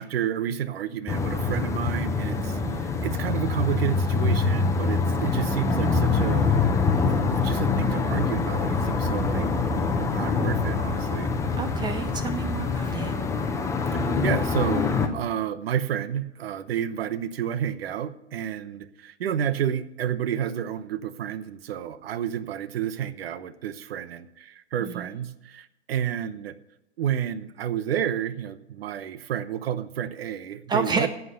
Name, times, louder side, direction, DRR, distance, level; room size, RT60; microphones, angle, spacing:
voice 1, 0.0-6.7 7.1-9.5 9.9-11.3 13.9-26.6 27.0-31.1, right 9 dB, 55° right, 15 dB, 0.9 m, -30 dB
sound 1, 1.1-15.1, left 4 dB, 10° left, 1.0 m, -25 dB
voice 2, 2.3-3.0 11.6-13.2 24.8-25.2 30.7-31.1, right 4 dB, 10° right, 10 dB, 0.6 m, -30 dB
11.0 x 8.2 x 6.6 m, 0.92 s
figure-of-eight pair, 110°, 36 cm